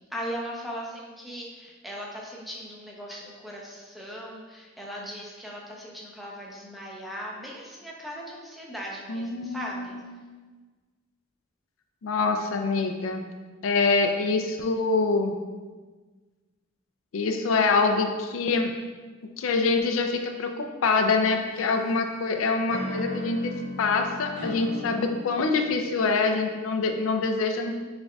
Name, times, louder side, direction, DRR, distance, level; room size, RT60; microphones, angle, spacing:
voice 1, 0.1-10.0, equal, ahead, -3 dB, 0.6 m, -38 dB
voice 2, 9.1-10.1 12.0-13.2 13.6-15.4 17.1-18.7 19.4-27.7, left 4 dB, 85° left, 5 dB, 0.4 m, -25 dB
sound 1, 21.2-22.0 22.7-26.3, left 1 dB, 65° right, 1.4 m, -37 dB
6.4 x 3.5 x 2.3 m, 1.4 s
head